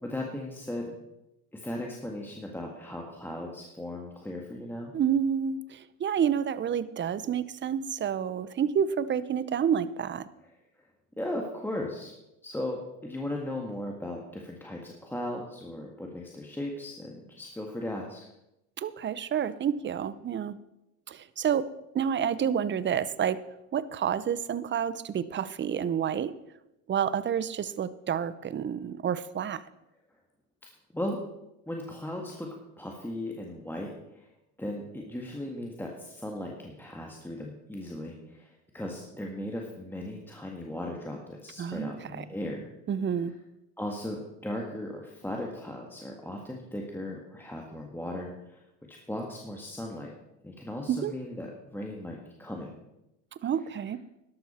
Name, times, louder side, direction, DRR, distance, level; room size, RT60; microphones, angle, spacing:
voice 1, 0.0-1.0 1.5-4.9 10.8-10.9 11.2-12.1 12.4-18.2 30.9-31.2 31.6-32.5 32.8-34.3 34.6-42.7 43.8-48.6 48.9-50.1 50.4-52.8, left 1 dB, 5° left, 0 dB, 1.7 m, -37 dB
voice 2, 4.9-10.3 18.8-20.6 21.1-21.7 21.9-23.4 23.7-26.3 26.9-29.6 41.6-41.9 42.2-42.3 42.9-43.3 50.9-51.1 53.4-54.0, right 8 dB, 25° right, 16 dB, 0.7 m, -29 dB
12.5 x 11.5 x 4.3 m, 0.90 s
supercardioid pair, 100°, 41 cm